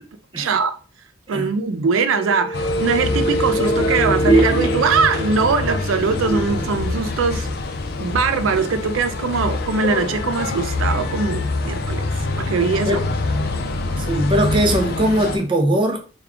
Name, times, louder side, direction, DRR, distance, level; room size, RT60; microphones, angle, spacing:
voice 1, 0.4-0.8 1.3-7.5 8.0-13.0, right 5 dB, 85° right, 0.4 m, -21 dB
sound 1, 2.1-7.8 8.1-8.2, right 1 dB, 25° left, 1.0 m, -24 dB
sound 2, 2.5-15.4, left 3 dB, 50° left, 0.5 m, -25 dB
voice 2, 13.9-16.0, right 1 dB, 25° right, 0.6 m, -20 dB
3.5 x 2.3 x 3.5 m
head